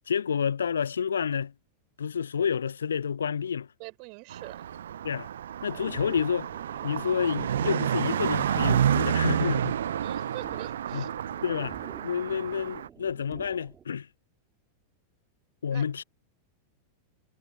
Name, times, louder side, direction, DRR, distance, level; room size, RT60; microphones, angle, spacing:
voice 1, 0.1-1.5 2.0-3.7 5.0-5.3 5.6-6.5 6.8-9.8 10.9-11.1 11.4-11.8 12.0-14.1 15.6-16.0, left 7 dB, 70° left, 0.9 m, -29 dB
voice 2, 3.8-4.7 10.0-11.1 15.7-15.8, right 37 dB, 45° right, 6.1 m, -43 dB
Car passing by, 4.3-12.9, right 10 dB, 65° right, 0.7 m, -29 dB
sound 1, 5.7-13.8, right 8 dB, 25° right, 4.6 m, -49 dB
figure-of-eight pair, 90°, 0 cm